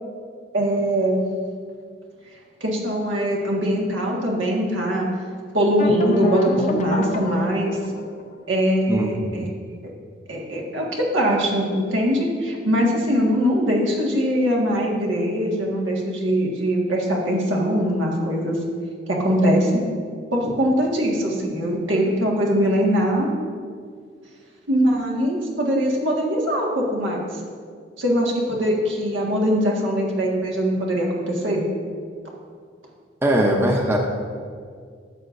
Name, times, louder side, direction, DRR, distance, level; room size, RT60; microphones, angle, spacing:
voice 1, 0.5-1.2 2.6-5.1 5.5-7.8 8.5-9.5 10.3-18.6 19.1-19.8 20.3-23.3 24.7-27.2 28.0-31.6, equal, 90° right, -2 dB, 1.6 m, -22 dB
sound 1, 5.8-8.5, left 2 dB, 40° left, 0.6 m, -28 dB
voice 2, 8.9-9.5 33.2-34.0, right 1 dB, 15° right, 1 dB, 0.6 m, -20 dB
12.5 x 7.3 x 2.5 m, 2.1 s
head